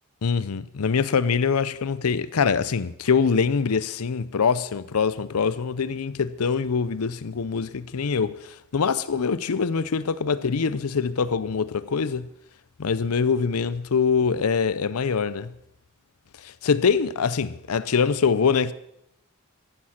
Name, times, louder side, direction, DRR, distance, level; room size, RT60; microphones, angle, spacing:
voice 1, 0.2-12.3 12.8-15.5 16.4-18.7, left 5 dB, 90° left, 0.6 m, -24 dB
14.5 x 11.5 x 5.8 m
head